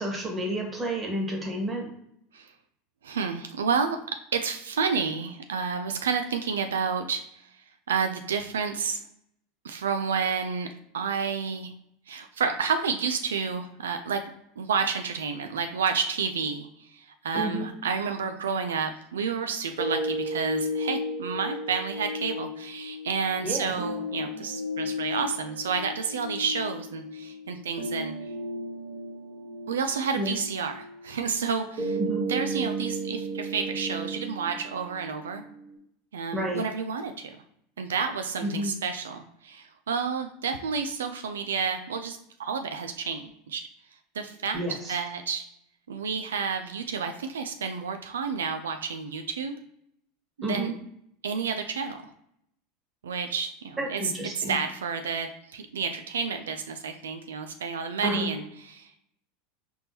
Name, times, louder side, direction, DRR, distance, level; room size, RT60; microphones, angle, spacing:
voice 1, 0.0-1.9 17.3-17.7 23.4-23.7 30.2-30.3 32.0-32.2 36.3-36.6 38.4-38.7 44.5-44.9 50.4-50.7 53.8-54.6 58.0-58.3, right 1 dB, 20° right, 0 dB, 1.4 m, -30 dB
voice 2, 3.0-4.0 4.3-9.0 9.6-10.7 10.9-11.7 12.1-14.2 14.6-28.1 29.7-32.0 32.3-35.4 36.1-37.4 37.8-43.6 44.1-45.4 45.9-49.6 50.4-50.7 51.2-52.0 53.0-59.0, right 5 dB, 90° right, 6 dB, 0.3 m, -30 dB
sound 1, 19.8-35.8, equal, 65° right, 1.5 m, -34 dB
4.3 x 3.5 x 2.7 m, 0.74 s
hypercardioid pair, 95°, 0 cm